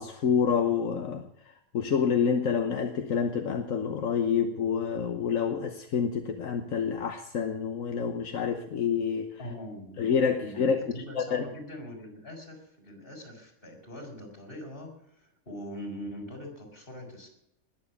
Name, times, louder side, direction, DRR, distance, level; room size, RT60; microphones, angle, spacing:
voice 1, 0.0-9.4 10.0-10.8 11.2-11.4, left 6 dB, 75° left, 6 dB, 1.4 m, -28 dB
voice 2, 9.4-10.1 10.4-17.3, equal, 40° left, 3 dB, 4.5 m, -42 dB
20.0 x 7.1 x 8.4 m, 0.77 s
omnidirectional pair, 1.4 m